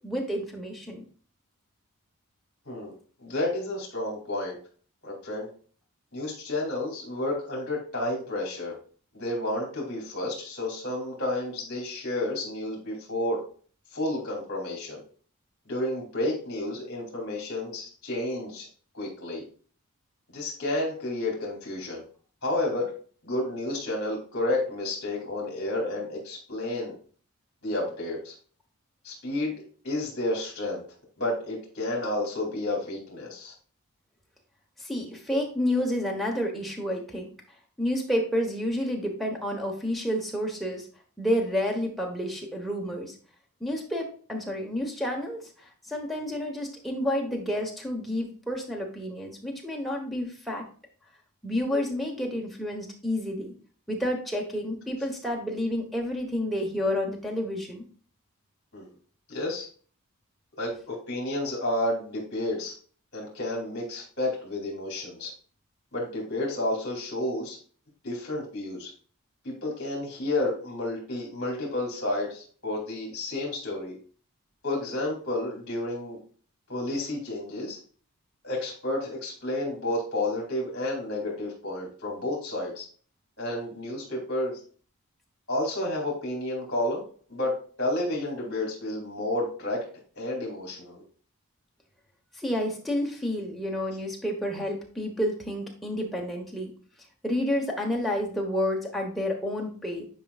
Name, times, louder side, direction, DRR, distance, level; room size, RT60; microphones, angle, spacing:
voice 1, 0.0-1.0 34.8-37.3 37.8-40.9 41.2-43.1 43.6-50.6 51.4-53.5 53.9-57.8 92.3-96.7 97.2-100.0, left 1 dB, ahead, -1 dB, 1.1 m, -30 dB
voice 2, 3.2-4.6 5.0-5.5 6.1-8.7 9.1-13.4 13.9-15.0 15.7-18.7 18.9-19.4 20.3-22.0 22.4-22.9 23.2-26.9 27.6-28.3 29.0-29.5 29.8-30.8 31.2-33.5 58.7-58.9 59.3-59.7 60.6-62.7 63.1-65.3 65.9-67.6 68.0-68.9 69.4-73.9 74.6-76.2 76.7-77.8 78.4-82.8 83.4-84.6 85.5-87.0 87.3-89.8 90.2-91.0, left 1 dB, 50° left, -2 dB, 2.6 m, -31 dB
9.6 x 4.6 x 2.4 m, 0.43 s
head